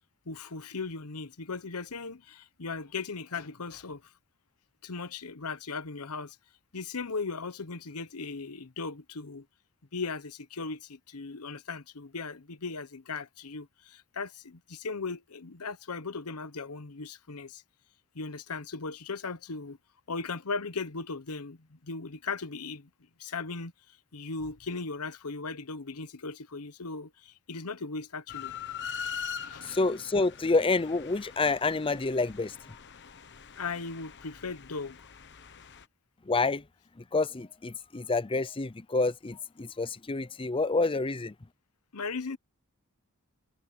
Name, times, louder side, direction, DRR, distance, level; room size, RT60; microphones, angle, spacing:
voice 1, 0.3-4.0 4.8-6.4 6.7-9.4 9.9-17.6 18.1-19.8 20.1-22.9 23.2-23.7 24.1-28.5 29.4-29.8 33.5-35.0 41.9-42.4, left 4 dB, 85° left, 1.1 m, -37 dB
sound 1, 28.3-35.8, left 7 dB, 55° left, 1.2 m, -42 dB
voice 2, 29.6-32.6 36.3-36.6 37.1-41.3, left 3 dB, 25° left, 0.6 m, -28 dB
head